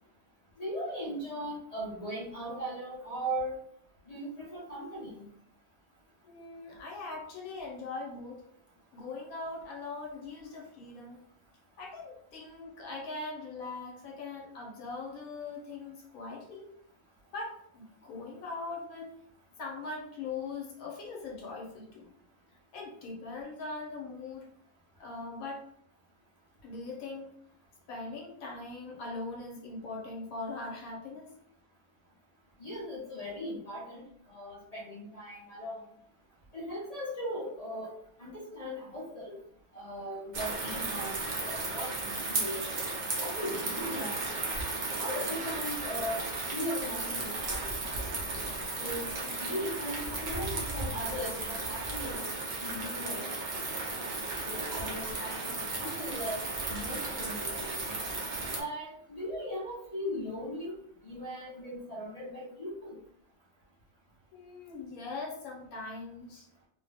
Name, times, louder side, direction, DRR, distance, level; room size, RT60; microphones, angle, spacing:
voice 1, 0.6-3.5 4.1-5.3 32.6-35.8 36.5-37.9 38.2-39.4 39.7-41.2 41.5-42.7 43.2-44.2 45.0-46.2 46.5-47.8 48.8-52.2 52.6-53.7 54.4-57.9 58.5-60.7 61.0-63.0, equal, 35° left, -5 dB, 0.6 m, -38 dB
voice 2, 6.2-8.5 8.9-11.2 11.8-16.7 17.3-19.1 19.6-22.1 22.7-24.5 25.0-25.6 26.6-27.3 27.9-31.3 64.3-66.4, left 3 dB, 80° left, -1 dB, 1.2 m, -41 dB
sound 1, 40.3-58.6, right 3 dB, 50° right, 0.5 m, -35 dB
2.7 x 2.1 x 3.3 m, 0.64 s
omnidirectional pair, 1.5 m